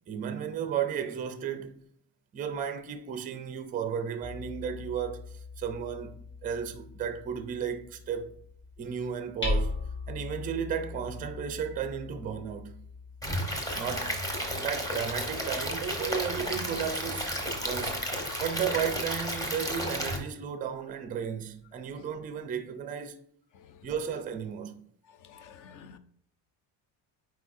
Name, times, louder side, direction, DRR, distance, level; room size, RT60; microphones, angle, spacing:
voice 1, 0.1-1.8 2.3-5.3 5.6-6.2 6.4-8.3 8.8-12.8 13.7-14.2 14.5-17.3 17.6-18.0 18.4-23.2 23.8-24.8, right 8 dB, 20° right, 0.4 m, -34 dB
Hammer, 4.2-15.9, left 2 dB, 25° left, 2.2 m, -39 dB
Stream / Liquid, 13.2-20.2, equal, 10° left, 0.9 m, -32 dB
voice 2, 25.3-26.0, left 6 dB, 45° left, 0.6 m, -49 dB
8.2 x 4.7 x 2.6 m
cardioid pair, 160°, 46 cm